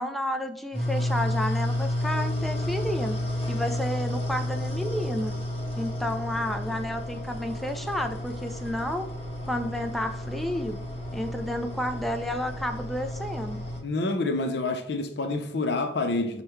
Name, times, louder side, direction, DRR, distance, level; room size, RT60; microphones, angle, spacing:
voice 1, 0.0-3.2 3.5-5.3 5.8-9.1 9.5-10.8 11.1-13.6, left 1 dB, ahead, 0.3 m, -31 dB
sound 1, 0.7-13.8, left 1 dB, 35° left, 1.2 m, -31 dB
voice 2, 13.8-16.4, left 2 dB, 65° left, 0.6 m, -27 dB
5.3 x 2.2 x 4.4 m
head